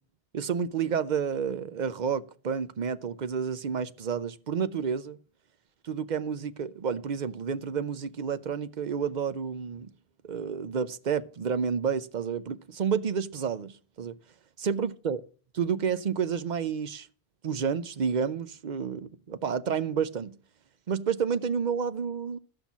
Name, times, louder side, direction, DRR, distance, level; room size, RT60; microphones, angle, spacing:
voice 1, 0.3-5.2 5.8-9.9 10.2-14.1 14.6-15.2 15.5-17.1 17.4-20.4 20.9-22.4, right 6 dB, 50° right, 0.7 m, -30 dB
13.0 x 5.9 x 7.2 m
omnidirectional pair, 1.1 m